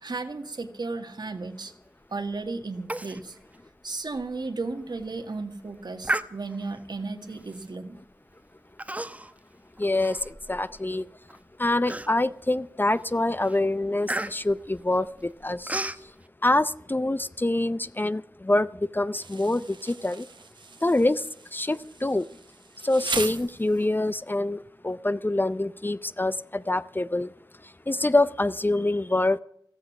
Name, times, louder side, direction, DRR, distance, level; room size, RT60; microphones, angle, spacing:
voice 1, 0.0-1.7 2.1-3.4 3.8-8.0, right 3 dB, 65° right, 7 dB, 1.8 m, -34 dB
Human voice, 2.9-3.2 3.5-3.6 4.1-4.3 4.8-5.1 6.0-6.8 7.5-7.8 8.8-9.4 9.8-10.8 11.3-11.4 11.9-12.4 12.9-13.1 13.4-16.0, right 1 dB, 20° right, 1.0 m, -33 dB
voice 2, 9.8-11.1 11.6-16.1 16.4-20.3 20.8-22.3 22.8-27.3 27.6-29.4, left 2 dB, 25° left, 15 dB, 0.6 m, -26 dB
Insect, 19.2-24.1, right 4 dB, 80° right, 1.1 m, -38 dB
14.5 x 14.5 x 6.0 m, 0.70 s
cardioid pair, 50°, 8 cm